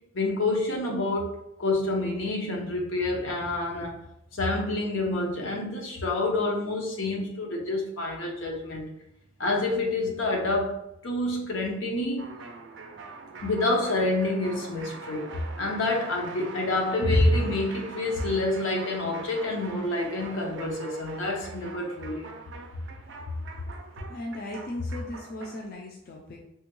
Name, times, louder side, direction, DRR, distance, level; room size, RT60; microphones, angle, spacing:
voice 1, 0.1-1.3 1.6-4.0 4.3-8.9 9.4-12.3 13.4-22.3, left 2 dB, 80° left, 0 dB, 0.7 m, -27 dB
sound 1, 12.2-25.7, right 4 dB, 65° right, 0.4 m, -44 dB
voice 2, 24.1-26.4, left 2 dB, 50° left, -1 dB, 0.4 m, -36 dB
3.4 x 2.2 x 3.0 m, 0.83 s
head